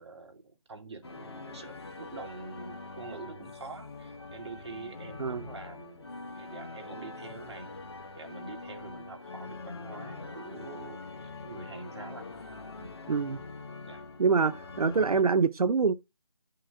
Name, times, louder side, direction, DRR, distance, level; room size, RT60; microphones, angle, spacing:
voice 1, 0.0-7.8 8.2-12.4 12.8-13.0 13.9-14.1, right 3 dB, 50° right, 1.1 m, -46 dB
sound 1, 1.0-15.2, left 3 dB, 45° left, 0.8 m, -44 dB
voice 2, 13.1-13.4 14.2-15.9, right 5 dB, 80° right, 0.5 m, -25 dB
10.5 x 3.8 x 3.5 m
figure-of-eight pair, 160°, 19 cm